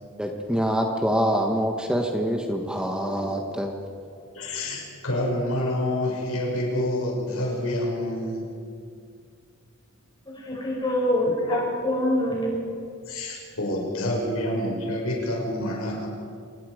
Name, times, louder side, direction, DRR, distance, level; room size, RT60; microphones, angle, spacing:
voice 1, 0.2-3.7, equal, 5° right, 2 dB, 1.3 m, -25 dB
voice 2, 4.1-8.5 11.5-11.7 13.1-16.1, left 1 dB, 85° left, -2 dB, 6.3 m, -28 dB
voice 3, 10.3-12.6 13.9-14.1, left 1 dB, 20° left, -3 dB, 6.9 m, -25 dB
26.5 x 20.5 x 5.0 m, 2.3 s
head